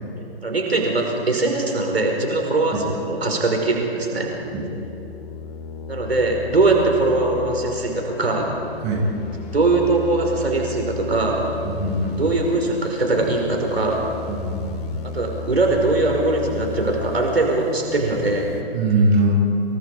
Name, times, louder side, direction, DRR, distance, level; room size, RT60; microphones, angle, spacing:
voice 1, 0.4-2.8 3.1-4.3 5.9-8.6 9.5-11.5 12.2-14.1 15.1-18.5, right 2 dB, 70° right, 1 dB, 5.4 m, -21 dB
sound 1, 3.4-18.6, left 6 dB, 35° left, 2.5 m, -35 dB
voice 2, 11.6-12.2 14.3-14.9 18.7-19.3, right 2 dB, 25° right, -2 dB, 7.2 m, -21 dB
30.0 x 28.5 x 5.1 m, 2.8 s
figure-of-eight pair, 135°, 32 cm